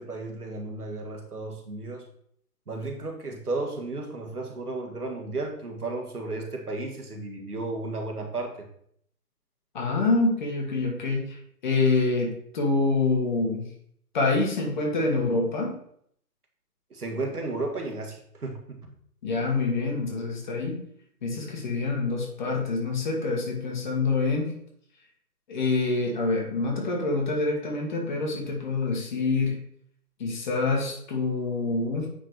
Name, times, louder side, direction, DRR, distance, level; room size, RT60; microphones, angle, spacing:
voice 1, 0.0-2.1 2.7-8.7 16.9-18.8, right 2 dB, 70° right, 2 dB, 1.8 m, -33 dB
voice 2, 9.7-11.4 11.6-13.6 14.1-15.8 19.2-20.8 21.2-24.5 25.5-29.6 30.2-32.1, left 3 dB, 30° left, 1 dB, 1.7 m, -26 dB
9.1 x 3.8 x 4.6 m, 0.67 s
figure-of-eight pair, 140°, 47 cm